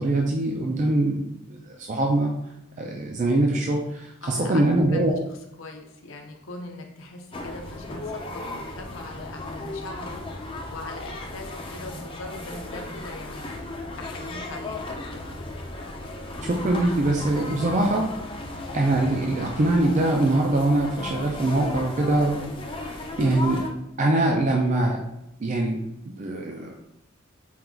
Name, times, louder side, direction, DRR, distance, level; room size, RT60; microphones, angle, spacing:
voice 1, 0.0-2.3 2.8-5.2 16.4-18.1 18.7-23.6 24.0-25.0 25.4-25.8 26.2-26.8, right 2 dB, 35° right, 1 dB, 0.4 m, -23 dB
voice 2, 4.2-10.2 10.7-15.3, left 2 dB, 80° left, 3 dB, 0.7 m, -40 dB
sound 1, 7.3-23.7, left 2 dB, 25° left, 0.5 m, -35 dB
4.4 x 2.3 x 3.8 m, 0.84 s
head